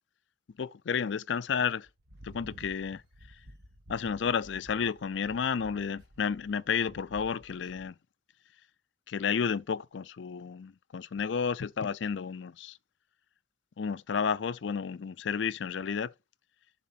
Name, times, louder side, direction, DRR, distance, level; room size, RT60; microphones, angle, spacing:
voice 1, 0.6-1.9 2.2-3.0 3.9-7.9 9.1-12.8 13.8-16.1, left 6 dB, 70° left, 0.4 m, -31 dB
sound 1, 1.9-7.9, equal, 60° right, 1.4 m, -53 dB
7.5 x 3.7 x 5.8 m
head